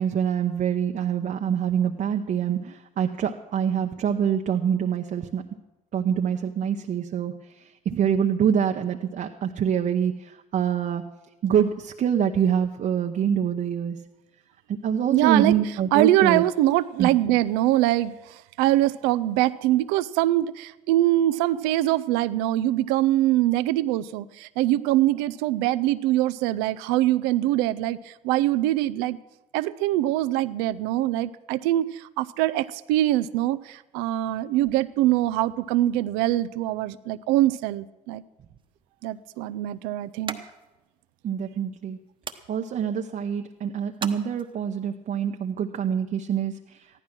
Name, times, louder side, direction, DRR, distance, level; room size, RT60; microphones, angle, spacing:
voice 1, 0.0-5.4 5.9-7.3 7.9-10.1 10.5-11.0 11.4-14.0 14.7-16.4 17.0-17.1 41.2-42.0 42.5-46.5, right 8 dB, 50° right, 3 dB, 0.8 m, -25 dB
voice 2, 15.1-15.6 15.9-29.2 29.5-38.2 39.0-40.4, right 15 dB, 85° right, 14 dB, 0.5 m, -23 dB
sound 1, 38.6-44.9, right 5 dB, 30° right, 1.1 m, -43 dB
14.0 x 11.5 x 6.0 m, 1.1 s
supercardioid pair, 70°, 17 cm